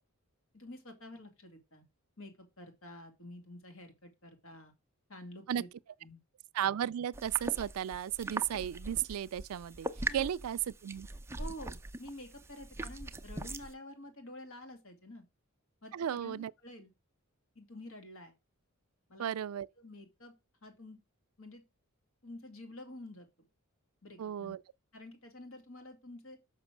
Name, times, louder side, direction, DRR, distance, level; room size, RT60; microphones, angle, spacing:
voice 1, 0.5-1.8 2.2-4.7 5.1-5.7 6.0-6.2 10.1-10.3 11.4-15.2 15.8-16.9 17.5-18.3 19.1-19.4 19.8-20.3 20.6-21.0 21.4-21.6 22.2-23.5 24.0-24.5 24.9-26.4, left 1 dB, 70° left, 2.5 m, -49 dB
voice 2, 6.5-11.1 15.9-16.5 19.2-19.7 24.2-24.6, right 10 dB, 80° right, 0.4 m, -34 dB
sound 1, 7.1-13.7, right 2 dB, 10° right, 0.5 m, -41 dB
6.3 x 5.9 x 6.1 m
head